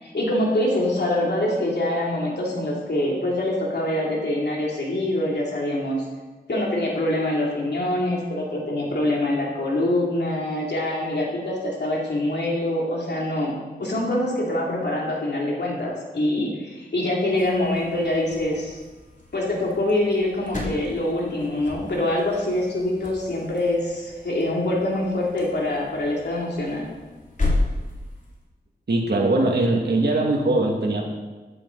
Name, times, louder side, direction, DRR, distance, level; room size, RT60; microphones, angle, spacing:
voice 1, 0.0-6.0 6.5-13.5 13.8-18.8 19.3-26.9, left 1 dB, 85° left, -3 dB, 3.0 m, -24 dB
sound 1, 17.3-28.4, left 2 dB, 50° left, 3.1 m, -33 dB
voice 2, 28.9-31.1, right 2 dB, 80° right, 0 dB, 2.3 m, -21 dB
13.5 x 11.0 x 4.1 m, 1.2 s
wide cardioid pair, 50°, 17 cm